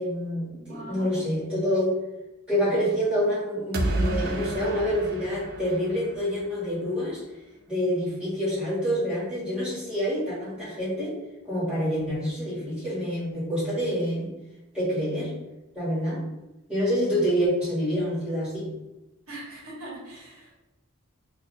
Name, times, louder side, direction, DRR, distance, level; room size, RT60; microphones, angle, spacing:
voice 1, 0.0-2.0 2.5-7.2 7.7-11.2 11.4-14.3 14.7-15.3 15.7-16.2 16.7-18.7, equal, 5° right, -11 dB, 1.4 m, -27 dB
voice 2, 0.5-1.2 19.3-20.5, right 1 dB, 70° right, -6 dB, 1.3 m, -41 dB
sound 1, 3.7-6.6, right 2 dB, 45° right, 0.4 m, -30 dB
2.7 x 2.4 x 3.8 m, 0.99 s
head